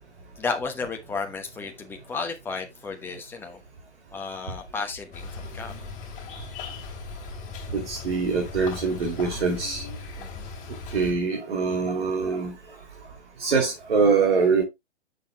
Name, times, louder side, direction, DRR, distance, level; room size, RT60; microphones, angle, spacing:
voice 1, 0.4-3.6 4.1-5.7 10.2-10.5, left 4 dB, 5° left, 1.1 m, -33 dB
sound 1, 5.1-11.1, left 3 dB, 20° left, 3.2 m, -38 dB
voice 2, 7.7-9.9 10.9-12.5 13.4-14.6, right 5 dB, 60° right, 2.8 m, -24 dB
10.5 x 6.8 x 2.2 m
figure-of-eight pair, 125°, 35 cm